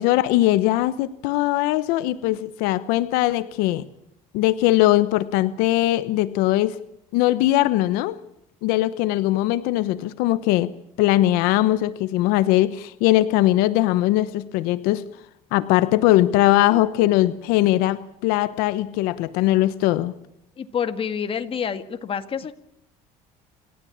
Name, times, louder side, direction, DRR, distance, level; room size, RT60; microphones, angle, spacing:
voice 1, 0.0-3.8 4.3-6.8 7.1-8.2 8.6-10.7 11.0-15.0 15.5-20.1, left 15 dB, 85° left, 14 dB, 1.0 m, -20 dB
voice 2, 20.6-22.5, left 7 dB, 35° left, 9 dB, 2.0 m, -28 dB
28.0 x 13.0 x 8.8 m, 0.78 s
cardioid pair, 110°, 15 cm